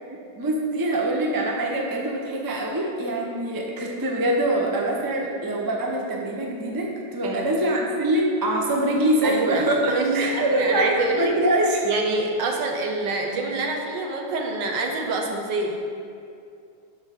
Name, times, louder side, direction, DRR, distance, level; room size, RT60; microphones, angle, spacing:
voice 1, 0.1-11.9, right 1 dB, 30° right, 0 dB, 0.3 m, -24 dB
voice 2, 9.2-11.3 11.8-16.0, right 2 dB, 80° right, 2 dB, 1.6 m, -26 dB
5.5 x 5.5 x 6.5 m, 2.5 s
omnidirectional pair, 1.9 m